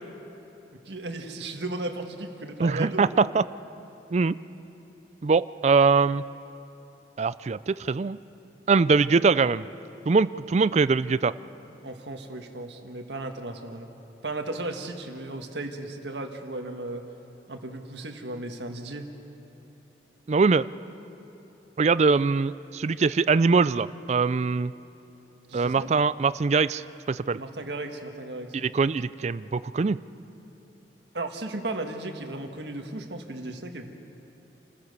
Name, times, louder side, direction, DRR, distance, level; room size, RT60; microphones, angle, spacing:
voice 1, 0.9-3.2 11.8-13.9 14.2-17.0 17.5-19.1 25.5-25.9 27.3-28.7 31.1-33.9, right 2 dB, 75° right, 4 dB, 1.7 m, -35 dB
voice 2, 2.6-3.4 4.1-4.4 5.2-6.2 7.2-8.2 8.7-9.7 10.1-11.3 20.3-20.7 21.8-24.7 25.5-26.8 27.1-27.4 28.5-30.0, right 4 dB, 40° right, 17 dB, 0.4 m, -22 dB
28.5 x 14.5 x 6.7 m, 3.0 s
head